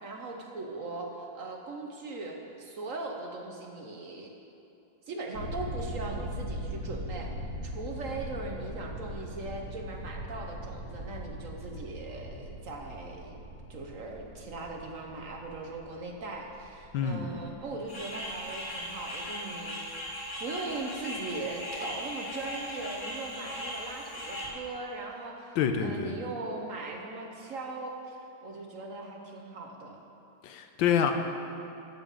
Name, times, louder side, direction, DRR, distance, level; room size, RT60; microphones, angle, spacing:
voice 1, 0.0-4.3 5.1-7.3 7.6-13.4 13.7-19.8 20.4-30.0, right 3 dB, 55° right, 1 dB, 1.1 m, -39 dB
sound 1, 5.3-19.0, equal, 35° right, 2.0 m, -40 dB
voice 2, 16.9-17.3 25.6-26.1 30.4-31.1, left 8 dB, 85° left, 6 dB, 1.5 m, -27 dB
sound 2, 17.9-24.5, equal, 25° left, 1.9 m, -38 dB
13.0 x 5.4 x 7.3 m, 2.7 s
omnidirectional pair, 2.0 m